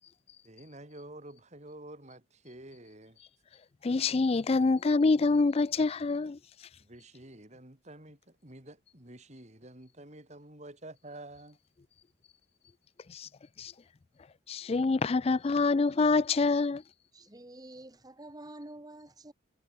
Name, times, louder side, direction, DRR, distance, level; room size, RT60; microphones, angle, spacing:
voice 1, 0.4-3.2 6.8-11.6, right 1 dB, 35° right, 3.9 m, -49 dB
voice 2, 3.8-6.4 13.1-13.3 13.6-13.7 14.5-16.8, left 3 dB, 30° left, 0.4 m, -26 dB
voice 3, 17.1-19.3, right 1 dB, 20° right, 1.4 m, -48 dB
head